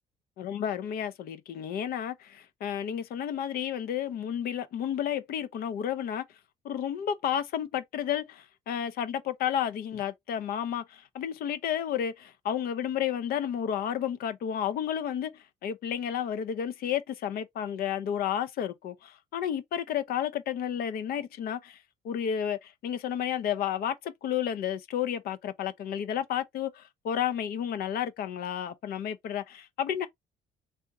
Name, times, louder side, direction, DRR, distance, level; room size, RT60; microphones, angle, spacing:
voice 1, 0.4-6.2 6.6-30.1, left 9 dB, 60° left, 0.6 m, -31 dB
3.5 x 2.6 x 2.8 m
cardioid pair, 110°, 17 cm